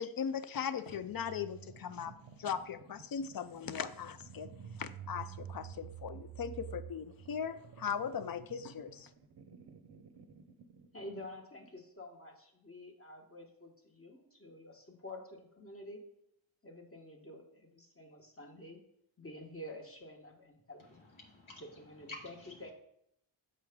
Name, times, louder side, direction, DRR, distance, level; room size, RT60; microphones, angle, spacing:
voice 1, 0.0-2.1 2.4-4.5 4.8-9.1, left 7 dB, 50° left, 13 dB, 0.4 m, -39 dB
sound 1, 0.9-11.4, right 8 dB, 50° right, 0.6 m, -51 dB
voice 2, 10.9-16.0 16.6-18.8 19.2-21.1 21.6-22.7, left 1 dB, 25° left, 2 dB, 1.2 m, -49 dB
voice 3, 20.8-22.7, left 2 dB, 70° left, 0 dB, 1.3 m, -52 dB
6.7 x 4.7 x 3.5 m, 0.75 s
wide cardioid pair, 80°, 50 cm